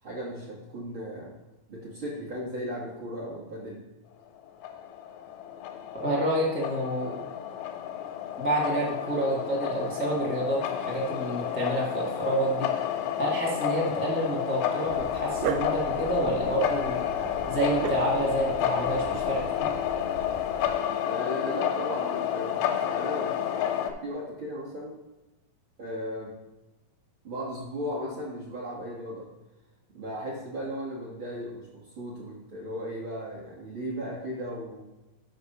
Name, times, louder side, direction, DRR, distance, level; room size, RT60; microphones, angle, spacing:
voice 1, 0.0-1.4 1.7-3.8 21.0-23.4 24.0-25.0 25.8-26.3 27.2-29.3 29.9-31.7 32.0-34.8, equal, 50° right, -5 dB, 1.6 m, -36 dB
sound 1, 4.5-23.9, left 10 dB, 90° left, 2.7 m, -30 dB
voice 2, 5.9-7.2 8.4-12.7 13.2-17.0 17.5-19.8, right 1 dB, 10° left, -6 dB, 0.6 m, -28 dB
Dog, 14.9-20.8, right 6 dB, 90° right, 2.6 m, -38 dB
6.6 x 5.8 x 5.7 m, 1.0 s
omnidirectional pair, 4.2 m